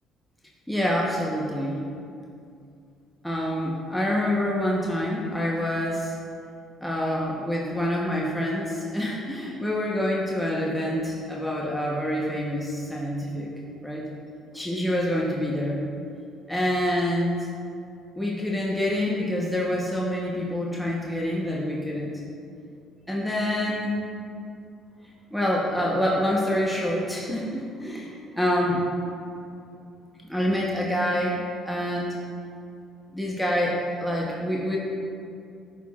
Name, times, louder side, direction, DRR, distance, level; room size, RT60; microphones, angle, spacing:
voice 1, 0.7-1.8 3.2-6.1 6.8-13.5 13.8-14.0 14.5-15.8 16.5-17.5 18.2-22.1 23.1-24.0 25.3-28.8 30.3-32.1 33.1-34.8, left 1 dB, 5° left, -3 dB, 0.9 m, -26 dB
11.0 x 4.6 x 2.4 m, 2.5 s
supercardioid pair, 70°, 0 cm